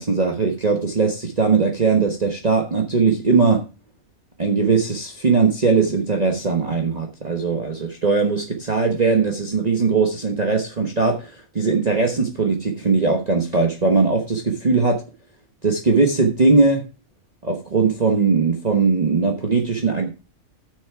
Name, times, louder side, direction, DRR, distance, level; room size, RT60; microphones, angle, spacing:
voice 1, 0.0-3.7 4.4-15.0 15.6-16.8 17.4-20.1, right 4 dB, 30° right, 2 dB, 1.2 m, -20 dB
10.5 x 6.6 x 4.7 m, 0.32 s
omnidirectional pair, 1.5 m